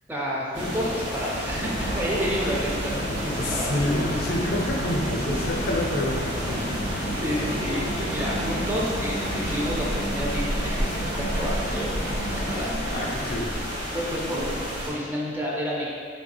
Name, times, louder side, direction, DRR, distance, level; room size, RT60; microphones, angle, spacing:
voice 1, 0.1-3.8 7.2-12.8 13.9-15.9, equal, 10° right, -4 dB, 0.3 m, -30 dB
sound 1, 0.5-14.9, equal, 75° right, 1.0 m, -31 dB
sound 2, 1.4-12.5, equal, 45° right, 0.7 m, -32 dB
voice 2, 3.4-6.6 12.9-13.6, left 1 dB, 55° left, -1 dB, 0.4 m, -27 dB
sound 3, 10.9-12.3 12.8-13.6, equal, 90° right, 0.5 m, -48 dB
3.2 x 2.3 x 2.8 m, 2.1 s
head